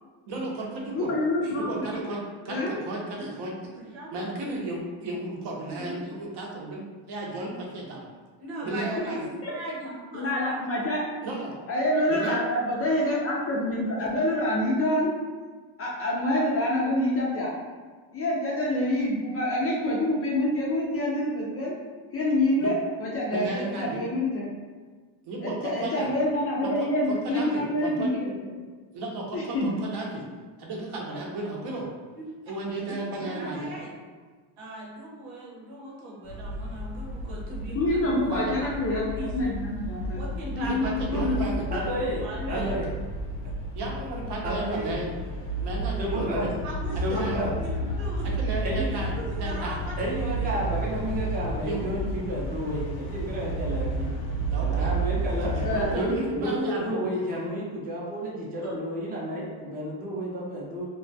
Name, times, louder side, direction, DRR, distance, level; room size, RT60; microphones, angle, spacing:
voice 1, 0.3-1.1 1.6-2.2 2.4-3.5 4.1-8.1 8.6-9.2 11.2-11.5 12.1-12.4 14.0-14.3 22.6-22.7 23.3-24.0 25.2-26.1 26.6-26.7 27.1-28.1 28.9-30.3 30.6-31.9 32.5-33.7 38.2-38.5 40.6-41.6 42.5-42.7 43.7-45.1 45.6-46.5 46.9-47.5 48.2-49.8 51.6-51.9 54.5-54.9 55.5-57.0, right 2 dB, 55° right, -1 dB, 0.7 m, -34 dB
voice 2, 0.9-2.1 2.5-2.7 9.0-9.1 9.4-9.5 10.1-11.0 11.7-15.1 15.8-17.6 18.1-21.7 22.1-24.5 25.4-28.5 29.3-29.7 37.7-40.2 40.5-41.8 55.6-56.2 58.6-58.8, left 1 dB, 35° left, -4 dB, 0.4 m, -27 dB
voice 3, 3.7-4.4 5.8-5.9 8.4-10.6 32.1-32.2 33.1-33.9 34.6-38.7 39.1-39.3 40.2-40.7 42.2-42.7 46.6-48.3 48.9-50.6, right 1 dB, 85° right, -4 dB, 0.9 m, -39 dB
sound 1, 36.3-56.0, right 1 dB, 70° left, 0.6 m, -32 dB
voice 4, 41.7-42.9 44.4-45.0 46.0-46.6 47.0-47.5 48.6-48.9 50.0-54.1 54.6-55.5 55.9-60.9, right 1 dB, 20° right, -4 dB, 0.5 m, -31 dB
2.2 x 2.2 x 2.6 m, 1.4 s
cardioid pair, 110°, 48 cm